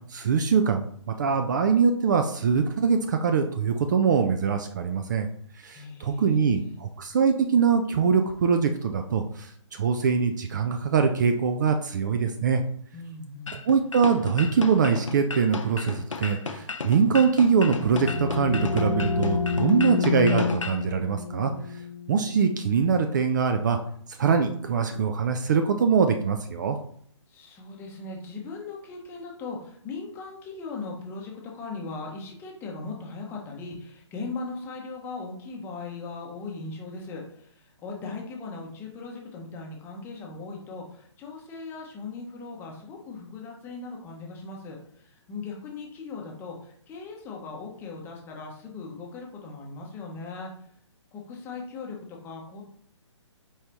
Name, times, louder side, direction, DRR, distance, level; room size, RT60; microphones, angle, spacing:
voice 1, 0.1-5.3 5.6-12.6 13.7-21.5 22.1-23.8 24.2-26.8, right 6 dB, 40° right, 5 dB, 0.4 m, -23 dB
voice 2, 5.7-6.8 12.9-13.6 27.3-50.5 51.1-52.6, left 3 dB, 15° left, -1 dB, 0.8 m, -39 dB
sound 1, 13.5-20.8, left 4 dB, 85° left, 0.5 m, -35 dB
sound 2, 17.4-23.0, left 5 dB, 45° left, 1.0 m, -29 dB
4.7 x 2.7 x 3.3 m, 0.62 s
figure-of-eight pair, 135°, 16 cm